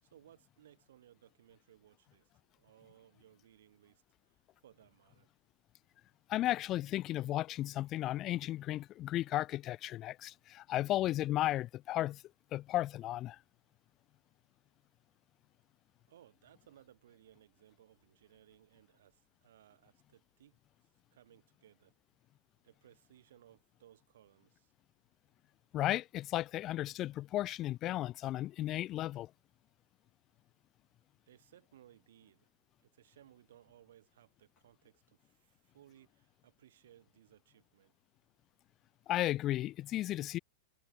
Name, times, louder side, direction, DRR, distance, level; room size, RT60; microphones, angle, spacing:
voice 1, 0.0-5.3 16.1-20.6 21.1-22.0 22.6-24.7 31.3-32.5 32.8-37.9, right 11 dB, 75° right, 7.0 m, -63 dB
voice 2, 6.3-12.2 12.5-13.4 25.7-29.3 39.1-40.4, left 14 dB, 35° left, 0.6 m, -34 dB
hypercardioid pair, 110°, 0 cm